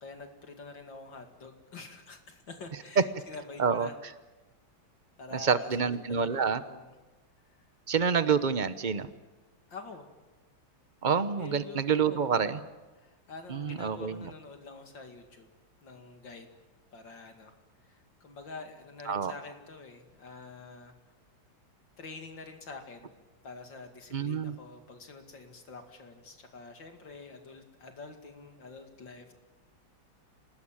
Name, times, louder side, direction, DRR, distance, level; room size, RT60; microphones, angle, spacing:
voice 1, 0.0-3.9 5.2-7.0 9.7-10.1 11.4-12.7 13.0-15.5 15.8-16.5 16.9-17.5 17.8-21.0 22.0-23.1 23.4-29.3, left 3 dB, 60° left, 5 dB, 2.9 m, -47 dB
voice 2, 5.3-6.6 7.9-9.1 11.0-12.6 13.5-14.3 19.1-19.3 24.1-24.5, right 6 dB, 60° right, 12 dB, 0.5 m, -28 dB
28.0 x 19.0 x 8.9 m, 1.2 s
omnidirectional pair, 2.3 m